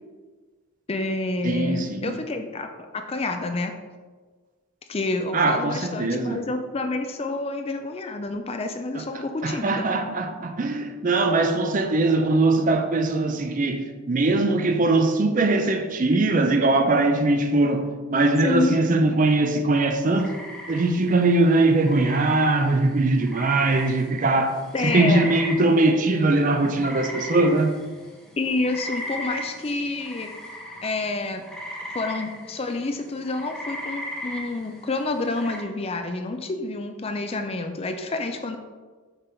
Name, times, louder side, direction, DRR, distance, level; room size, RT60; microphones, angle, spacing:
voice 1, 0.9-2.7 2.9-3.7 4.9-9.8 18.4-18.8 24.7-25.3 28.4-30.3 30.8-31.5 31.9-38.6, left 2 dB, 25° left, 0.4 m, -28 dB
voice 2, 1.4-2.1 5.3-6.4 8.9-9.0 9.4-20.3 20.7-24.6 24.8-27.8, right 2 dB, 35° right, 0.5 m, -21 dB
sound 1, 20.0-35.6, equal, 5° left, 0.9 m, -37 dB
6.6 x 3.9 x 4.4 m
head